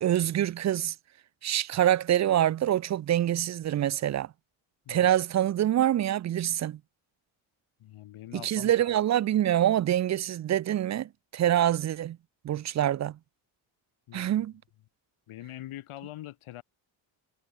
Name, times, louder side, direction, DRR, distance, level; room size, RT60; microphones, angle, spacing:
voice 1, 0.0-1.0 1.4-4.3 4.9-6.8 8.3-12.2 12.4-13.2 14.1-14.5, right 11 dB, 35° right, 0.4 m, -25 dB
voice 2, 7.8-8.9 14.1-14.3 15.3-16.6, left 14 dB, 80° left, 5.9 m, -43 dB
cardioid pair, 110°, 49 cm